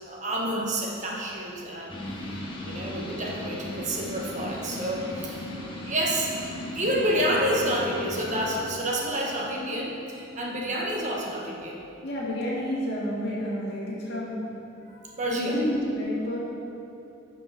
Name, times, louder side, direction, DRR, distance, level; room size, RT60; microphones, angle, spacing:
voice 1, 0.1-1.9 2.6-5.4 5.8-6.3 6.7-11.8 14.9-15.6, right 1 dB, 35° right, -2 dB, 1.2 m, -29 dB
sound 1, 1.9-8.6, left 1 dB, 25° left, 1.1 m, -36 dB
voice 2, 12.0-14.4 15.3-16.4, equal, 55° left, -7 dB, 2.1 m, -29 dB
11.0 x 5.9 x 4.1 m, 2.8 s
head